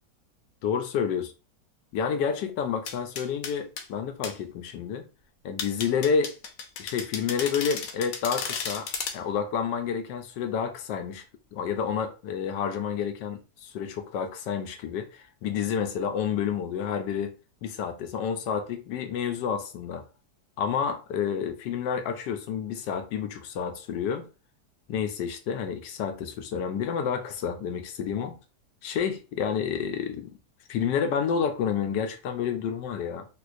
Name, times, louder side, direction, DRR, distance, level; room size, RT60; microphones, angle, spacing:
voice 1, 0.6-1.3 1.9-5.1 5.4-6.4 6.8-8.9 9.1-11.2 11.5-17.3 17.6-20.0 20.6-24.3 24.9-28.4 28.8-30.3 30.7-33.3, left 7 dB, 90° left, 1.3 m, -29 dB
sound 1, 2.9-3.9 4.2-4.4 5.6-9.2, left 6 dB, 65° left, 1.0 m, -34 dB
4.0 x 2.5 x 2.5 m
omnidirectional pair, 1.8 m